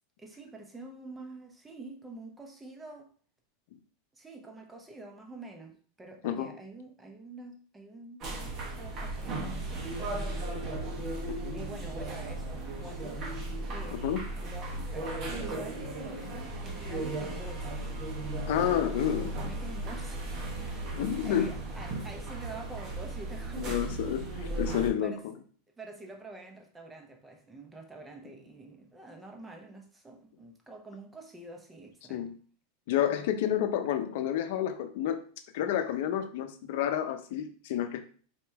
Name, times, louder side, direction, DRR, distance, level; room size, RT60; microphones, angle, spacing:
voice 1, 0.2-3.1 4.1-10.8 11.5-13.4 13.7-14.1 14.3-17.9 19.1-20.2 20.6-24.2 25.0-25.3 25.8-32.3, right 2 dB, 10° right, 0.8 m, -47 dB
sound 1, 8.2-24.9, right 2 dB, 40° right, 1.3 m, -36 dB
voice 2, 13.9-14.2 18.5-19.3 20.9-21.5 23.6-24.2 24.6-25.3 32.1-32.3 32.9-35.2 35.5-38.0, left 10 dB, 70° left, 0.6 m, -30 dB
4.4 x 3.0 x 3.4 m
supercardioid pair, 135°, 0 cm